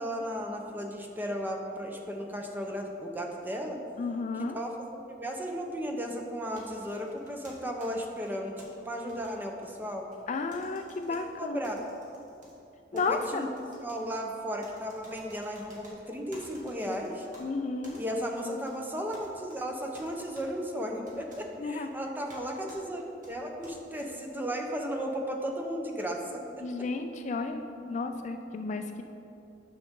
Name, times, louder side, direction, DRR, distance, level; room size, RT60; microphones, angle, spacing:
voice 1, 0.0-3.8 4.3-10.1 11.4-11.8 13.1-13.5 13.8-17.3 18.0-26.4, equal, 10° right, 1 dB, 0.7 m, -35 dB
voice 2, 4.0-4.6 10.3-11.6 12.9-13.5 17.4-18.0 21.6-21.9 26.6-29.0, left 3 dB, 40° left, 7 dB, 0.3 m, -33 dB
sound 1, 6.6-8.7 9.1-10.2 10.5-11.2 11.6-12.5 12.9-14.0 14.6-15.9 16.3-17.4 17.8-18.8 19.1-19.6 19.9-20.5 21.1-21.4 22.3-22.4 22.7-22.8 23.2-24.1, right 1 dB, 50° right, 1.8 m, -53 dB
9.2 x 6.4 x 3.7 m, 2.7 s
head